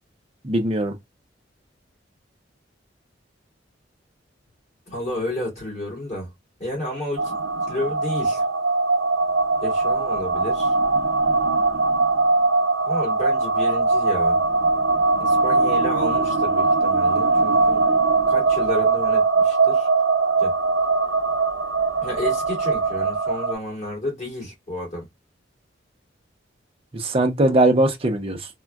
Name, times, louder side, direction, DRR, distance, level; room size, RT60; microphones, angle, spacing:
voice 1, 0.4-0.9 26.9-28.5, right 1 dB, 30° right, 0.5 m, -20 dB
voice 2, 4.9-6.3 6.6-8.4 9.6-10.7 12.8-14.4 15.2-17.9 18.3-19.9 20.4-20.5 22.0-25.1, left 1 dB, 35° left, 2.2 m, -31 dB
sound 1, 7.2-23.5, right 3 dB, 75° right, 0.7 m, -21 dB
3.5 x 2.1 x 2.2 m
head